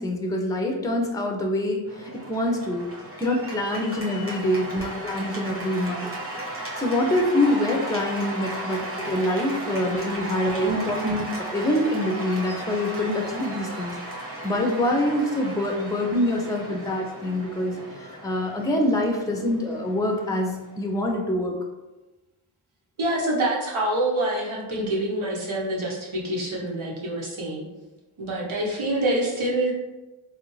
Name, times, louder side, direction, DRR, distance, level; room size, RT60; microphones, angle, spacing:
voice 1, 0.0-2.9 3.2-6.1 6.8-14.0 14.4-21.6, left 1 dB, 5° left, 2 dB, 0.5 m, -25 dB
Cheering / Applause, 1.9-21.1, right 1 dB, 25° right, 1.0 m, -36 dB
voice 2, 23.0-27.6 28.2-29.7, right 1 dB, 70° right, -3 dB, 1.1 m, -26 dB
3.3 x 2.4 x 3.1 m, 1.1 s
cardioid pair, 45°, 50 cm